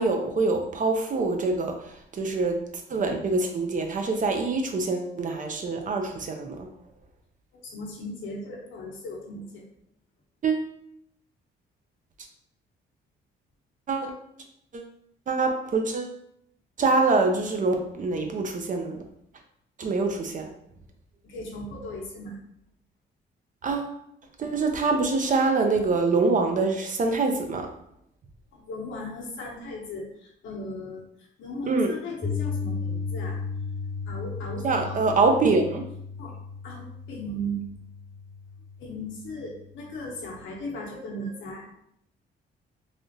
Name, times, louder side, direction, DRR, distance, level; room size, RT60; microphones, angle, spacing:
voice 1, 0.0-2.6 2.9-6.7 10.4-10.7 13.9-14.1 14.7-14.9 15.3-16.2 16.8-19.0 19.8-20.5 23.6-23.9 24.4-27.7 31.7-31.9 34.6-35.8, right 3 dB, 40° right, 4 dB, 0.5 m, -25 dB
voice 2, 7.5-9.6 21.2-22.4 28.5-31.0 31.4-33.4 34.1-35.0 36.2-36.3 36.6-37.6 38.8-41.8, equal, 75° left, -1 dB, 0.9 m, -37 dB
Piano, 32.2-40.3, left 5 dB, 15° left, 0.4 m, -35 dB
3.3 x 2.4 x 2.7 m, 0.73 s
cardioid pair, 90°, 20 cm